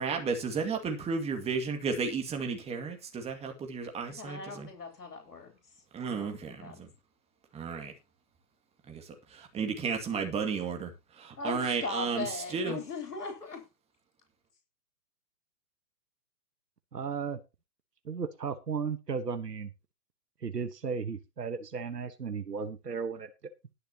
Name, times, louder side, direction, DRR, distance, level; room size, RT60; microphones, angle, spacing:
voice 1, 0.0-4.7 5.9-6.7 7.5-7.9 8.9-9.0 9.5-10.9 11.4-12.3 12.5-12.8, right 5 dB, 15° right, 2.2 m, -33 dB
voice 2, 4.2-5.5 6.1-6.8 11.4-13.6, left 4 dB, 75° left, 3.7 m, -39 dB
voice 3, 16.9-17.4 18.1-19.7 20.4-23.3, right 5 dB, 80° right, 1.4 m, -35 dB
20.0 x 6.8 x 3.0 m
figure-of-eight pair, 125°, 48 cm